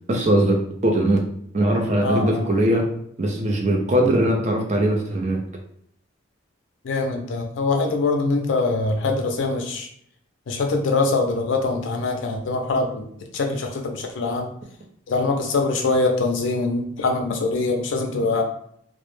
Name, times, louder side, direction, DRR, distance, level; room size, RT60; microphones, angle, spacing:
voice 1, 0.1-0.6 0.8-1.2 1.5-2.9 3.2-5.4, right 1 dB, 35° right, 2 dB, 0.4 m, -20 dB
voice 2, 2.0-2.4 6.8-9.9 10.5-13.1 13.3-14.5 15.1-18.4, left 3 dB, 75° left, 3 dB, 0.4 m, -23 dB
2.1 x 2.0 x 3.0 m, 0.66 s
head